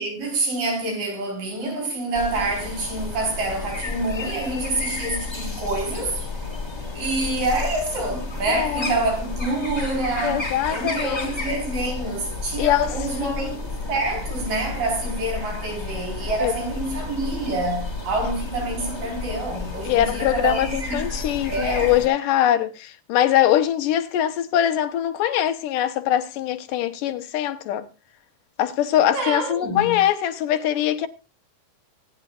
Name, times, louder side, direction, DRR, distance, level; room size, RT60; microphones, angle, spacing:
voice 1, 0.0-6.2 6.9-13.6 13.9-21.9 29.1-30.0, right 2 dB, 90° right, 6.2 m, -27 dB
sound 1, 2.1-22.1, left 3 dB, 10° left, 1.3 m, -31 dB
voice 2, 8.5-9.0 10.2-11.3 12.6-13.5 16.4-16.5 19.8-27.9 28.6-31.1, left 11 dB, 90° left, 2.6 m, -22 dB
24.0 x 9.1 x 2.4 m
omnidirectional pair, 3.7 m